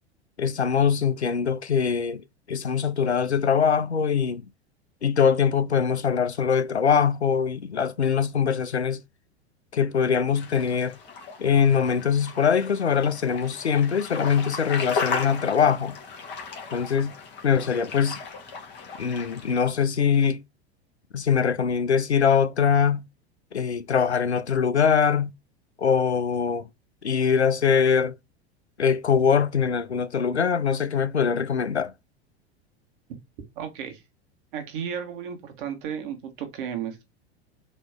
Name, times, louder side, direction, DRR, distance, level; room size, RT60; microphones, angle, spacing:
voice 1, 0.4-2.2 2.5-4.5 5.0-9.0 9.7-11.0 11.4-16.0 16.7-17.1 17.4-18.2 19.0-20.4 21.1-23.1 23.5-25.3 25.8-26.7 27.0-28.1 28.8-31.9, left 7 dB, 90° left, 0.5 m, -22 dB
sound 1, 10.3-19.5, left 5 dB, 35° left, 1.4 m, -36 dB
voice 2, 33.5-34.0 34.5-37.0, right 8 dB, 55° right, 1.5 m, -33 dB
4.3 x 2.9 x 3.5 m
figure-of-eight pair, 85°, 32 cm